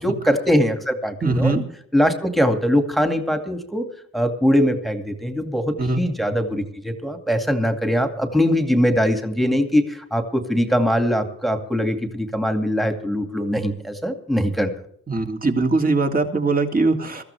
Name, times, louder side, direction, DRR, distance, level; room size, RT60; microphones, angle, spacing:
voice 1, 0.0-1.5 1.9-3.9 4.1-14.7, equal, ahead, 6 dB, 2.3 m, -21 dB
voice 2, 1.2-1.6 5.8-6.0 15.1-17.2, right 3 dB, 30° right, 4 dB, 2.8 m, -21 dB
21.5 x 14.5 x 3.5 m, 0.68 s
cardioid pair, 90°, 30 cm